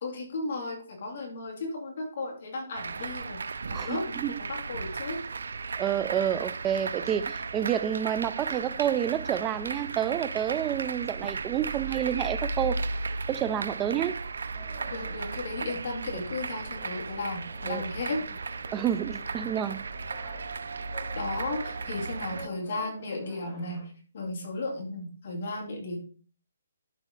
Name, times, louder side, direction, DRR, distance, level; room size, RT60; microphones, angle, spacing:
voice 1, 0.0-5.2 14.9-18.2 21.1-26.0, left 2 dB, 40° left, 2.5 m, -35 dB
sound 1, 2.7-22.5, right 4 dB, 80° right, 0.5 m, -35 dB
voice 2, 3.7-4.4 5.8-12.9 13.3-14.2 17.7-17.9 18.7-19.9, right 10 dB, 10° right, 0.4 m, -29 dB
sound 2, 14.5-23.9, left 1 dB, 15° left, 1.6 m, -49 dB
12.0 x 4.6 x 3.7 m
hypercardioid pair, 175°, 0 cm